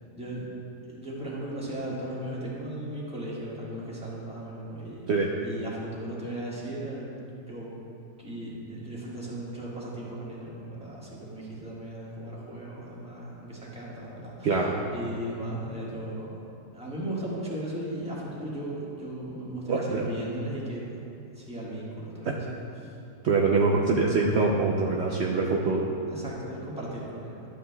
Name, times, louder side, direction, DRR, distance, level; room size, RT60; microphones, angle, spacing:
voice 1, 0.1-0.5 0.8-5.1 5.4-7.1 7.5-7.7 8.2-16.4 16.7-20.8 21.3-22.4 22.8-22.9 26.1-27.5, right 1 dB, 5° right, -7 dB, 1.3 m, -36 dB
voice 2, 19.7-20.1 22.3-22.4 23.2-25.9, right 4 dB, 70° right, -2 dB, 0.6 m, -24 dB
11.5 x 8.3 x 2.2 m, 2.7 s
omnidirectional pair, 1.8 m